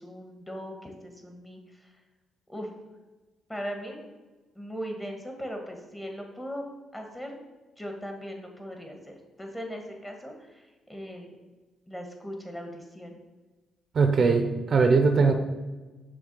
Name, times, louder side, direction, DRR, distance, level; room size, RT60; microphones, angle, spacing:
voice 1, 0.0-1.9 2.5-2.7 3.5-4.2 4.5-7.4 7.8-11.4 11.9-13.2, equal, 10° left, 2 dB, 1.4 m, -39 dB
voice 2, 13.9-15.3, right 4 dB, 50° right, 5 dB, 0.7 m, -21 dB
6.1 x 3.4 x 5.4 m, 1.2 s
cardioid pair, 75°, 0 cm